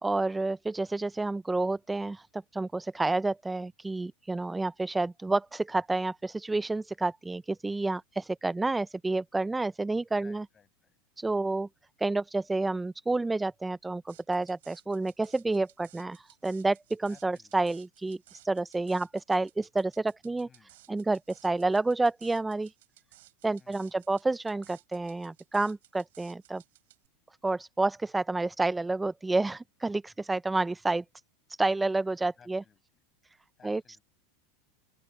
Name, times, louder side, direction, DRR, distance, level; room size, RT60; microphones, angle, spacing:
voice 1, 0.0-10.4 11.2-11.7 12.0-18.2 18.4-20.5 20.9-22.7 23.4-26.6 27.4-31.0 31.6-32.6 33.6-33.8, right 2 dB, 10° right, 0.4 m, -29 dB
voice 2, 10.2-11.0 17.1-17.5 20.5-20.7 23.6-24.1 32.4-33.0 33.6-34.0, left 6 dB, 20° left, 6.9 m, -59 dB
sound 1, 14.1-27.1, right 16 dB, 80° right, 4.4 m, -59 dB
open air
supercardioid pair, 130°, 0 cm